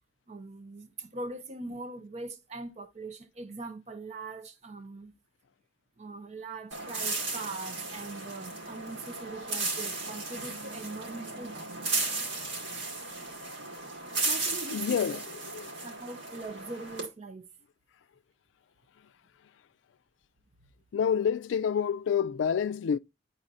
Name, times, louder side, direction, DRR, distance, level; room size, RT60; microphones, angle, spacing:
voice 1, 0.3-5.1 6.0-12.1 14.1-15.2 15.8-17.5, right 3 dB, 35° right, 0.5 m, -41 dB
sound 1, 6.7-17.1, right 3 dB, 85° right, 2.2 m, -35 dB
voice 2, 14.7-15.8 20.9-23.0, left 7 dB, 80° left, 0.3 m, -28 dB
9.8 x 4.0 x 2.5 m
head